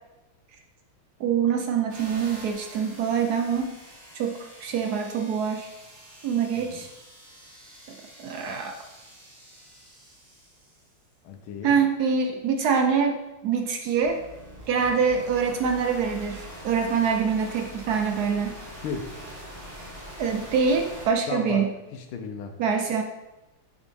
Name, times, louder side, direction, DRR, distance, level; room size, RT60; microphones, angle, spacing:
voice 1, 1.2-3.7 4.2-5.7 6.2-6.9 7.9-8.7 11.6-13.2 13.4-14.2 14.7-18.6 20.2-21.7 22.6-23.0, right 6 dB, 75° right, 4 dB, 0.9 m, -25 dB
sound 1, 1.9-10.9 14.0-21.1, equal, 30° right, 1.7 m, -44 dB
voice 2, 11.2-11.8 18.8-19.1 21.3-21.6 21.9-22.6, left 5 dB, 80° left, 5 dB, 1.6 m, -34 dB
7.3 x 4.0 x 5.2 m, 1.0 s
omnidirectional pair, 2.3 m